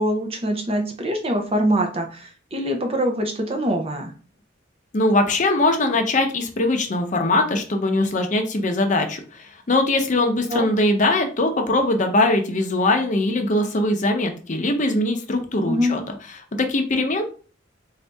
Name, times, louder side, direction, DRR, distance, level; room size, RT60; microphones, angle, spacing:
voice 1, 0.0-4.1 10.5-10.7 15.6-16.0, equal, 30° right, 3 dB, 0.6 m, -24 dB
voice 2, 4.9-16.0 16.6-17.2, left 2 dB, 40° left, 5 dB, 0.7 m, -21 dB
4.0 x 2.7 x 3.4 m, 0.38 s
head